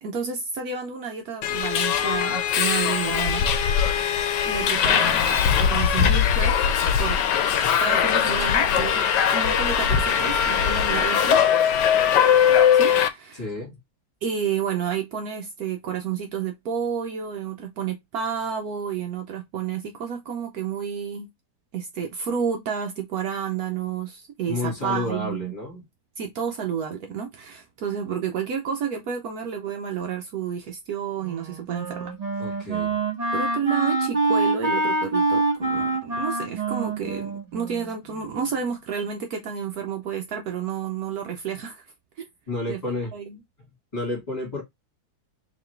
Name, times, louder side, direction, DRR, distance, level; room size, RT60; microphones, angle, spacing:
voice 1, 0.0-4.1 4.5-6.7 7.0-7.2 7.8-9.1 9.3-11.4 12.7-13.5 14.2-21.3 21.7-25.5 26.2-32.1 32.5-32.8 33.3-41.9 42.2-42.3 42.7-43.4, right 7 dB, 70° right, 1.1 m, -30 dB
Subway metro underground, 1.4-13.1, left 8 dB, 85° left, 1.3 m, -21 dB
voice 2, 13.3-13.8 24.5-25.8 32.4-33.0 42.5-43.1 43.9-44.6, left 2 dB, 20° left, 2.0 m, -30 dB
Wind instrument woodwind instrument, 31.2-38.4, right 2 dB, 25° right, 1.0 m, -26 dB
4.0 x 3.1 x 3.2 m
omnidirectional pair, 1.8 m